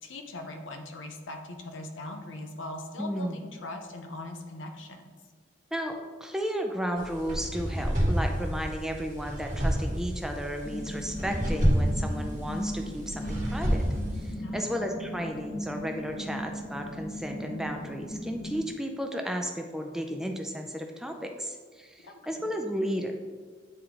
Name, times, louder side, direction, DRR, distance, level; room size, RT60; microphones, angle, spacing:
voice 1, 0.0-5.1 14.4-14.8 22.0-22.2, left 1 dB, 90° left, 4 dB, 0.7 m, -40 dB
voice 2, 3.0-3.4 5.7-13.8 14.2-23.1, equal, 5° right, 3 dB, 0.4 m, -33 dB
sound 1, 7.0-14.3, equal, 40° right, 1.2 m, -29 dB
sound 2, 10.6-18.6, equal, 65° left, 1.6 m, -38 dB
8.8 x 3.7 x 3.0 m, 1.5 s
head